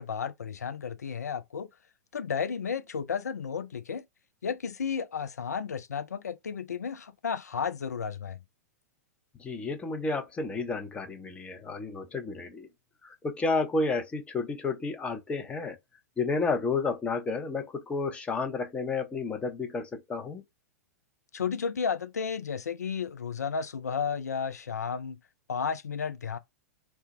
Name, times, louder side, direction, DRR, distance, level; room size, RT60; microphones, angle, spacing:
voice 1, 0.0-1.7 2.1-4.1 4.4-8.4 21.3-25.2 25.5-26.4, left 6 dB, 75° left, 0.4 m, -33 dB
voice 2, 9.4-12.7 13.0-15.8 16.2-20.4, left 3 dB, 15° left, 0.6 m, -31 dB
2.2 x 2.0 x 3.0 m
figure-of-eight pair, 100°, 9 cm